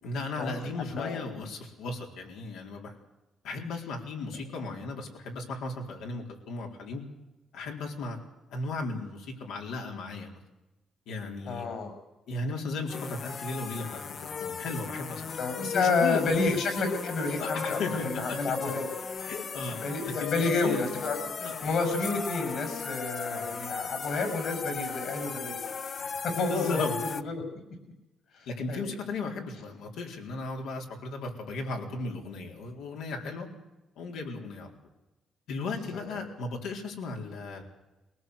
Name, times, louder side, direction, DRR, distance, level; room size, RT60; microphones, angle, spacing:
voice 1, 0.0-3.0 3.4-7.0 7.5-8.2 8.5-10.4 11.1-11.7 12.3-16.3 17.4-18.4 19.2-19.8 20.0-20.8 21.4-21.5 23.3-23.6 26.5-27.0 28.5-33.5 34.0-34.7 35.5-37.6, left 3 dB, 85° left, 2 dB, 4.1 m, -36 dB
voice 2, 0.9-1.2 11.5-11.9 15.4-18.8 19.8-25.6 26.2-27.3 28.7-28.9 35.9-36.0, left 3 dB, 65° left, 7 dB, 6.4 m, -30 dB
sound 1, 12.9-27.2, left 5 dB, 50° left, 0.9 m, -37 dB
22.5 x 18.5 x 8.1 m, 1.0 s
cardioid pair, 90°, 0 cm